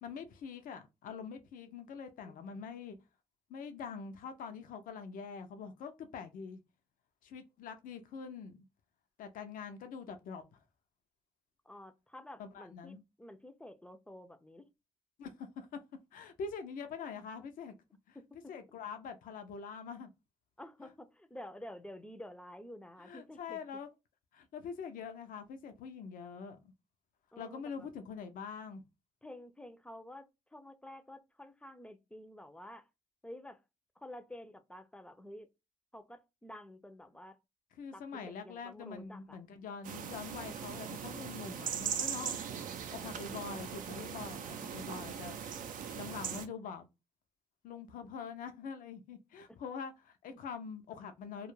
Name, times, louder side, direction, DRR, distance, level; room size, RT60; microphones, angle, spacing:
voice 1, 0.0-3.0 3.5-6.6 7.2-8.6 9.2-10.4 12.4-13.0 15.2-15.8 16.1-17.7 18.1-18.2 18.5-20.1 20.8-20.9 23.0-23.9 24.3-26.7 27.4-28.8 37.8-42.4 42.9-45.4 45.9-46.9 47.6-51.5, left 6 dB, 75° left, 0.5 m, -44 dB
voice 2, 2.3-2.6 11.7-14.7 18.1-18.5 20.6-23.6 27.3-27.9 29.2-32.9 33.2-33.6 34.0-35.5 35.9-37.4 37.9-39.4, left 1 dB, 5° left, 0.4 m, -50 dB
sound 1, 39.8-46.5, right 8 dB, 75° right, 0.4 m, -40 dB
2.3 x 2.0 x 3.0 m
cardioid pair, 70°, 14 cm